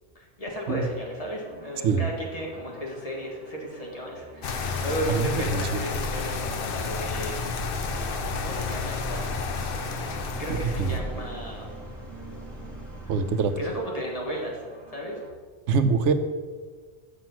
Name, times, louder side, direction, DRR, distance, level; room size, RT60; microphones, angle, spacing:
voice 1, 0.1-7.5 8.4-9.3 10.4-11.6 13.6-14.6 14.9-15.2, equal, 30° left, -1 dB, 1.5 m, -34 dB
sound 1, 0.6-15.3, equal, 35° right, 1.8 m, -48 dB
sound 2, 4.4-11.0, left 4 dB, 55° left, 0.8 m, -31 dB
voice 2, 5.1-5.8 10.6-10.9 13.1-13.5 15.7-16.1, right 5 dB, 85° right, 10 dB, 0.9 m, -24 dB
Car passing by / Accelerating revving vroom, 6.5-13.8, right 2 dB, ahead, 1.6 m, -40 dB
6.1 x 6.0 x 5.9 m, 1.5 s
omnidirectional pair, 1.2 m